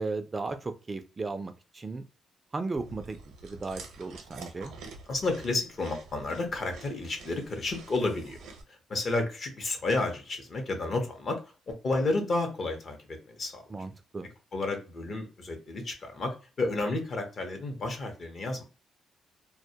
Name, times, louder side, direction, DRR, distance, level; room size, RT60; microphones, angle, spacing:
voice 1, 0.0-2.0 2.5-3.2 3.4-4.7 13.7-14.3, right 3 dB, 30° right, 8 dB, 0.3 m, -35 dB
Chewing mastication, 2.8-8.6, right 4 dB, 80° right, 0.6 m, -48 dB
voice 2, 5.1-8.4 8.7-13.7 14.5-18.6, left 2 dB, 50° left, 5 dB, 0.7 m, -31 dB
2.2 x 2.1 x 2.7 m, 0.33 s
cardioid pair, 90°, 0 cm